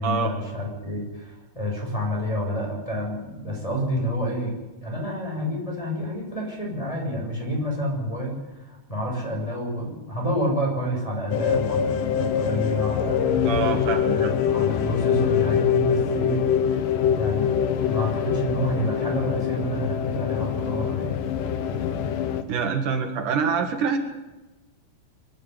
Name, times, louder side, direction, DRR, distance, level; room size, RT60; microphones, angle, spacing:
voice 1, 0.0-4.5 4.8-13.5 14.1-16.4 17.1-17.5 17.9-21.2, equal, 10° left, -1 dB, 6.9 m, -28 dB
sound 1, 11.3-22.4, left 8 dB, 90° left, 2.9 m, -24 dB
voice 2, 13.5-14.3 22.5-24.0, right 5 dB, 75° right, 6 dB, 3.2 m, -25 dB
25.0 x 11.5 x 9.8 m, 1.1 s
omnidirectional pair, 3.7 m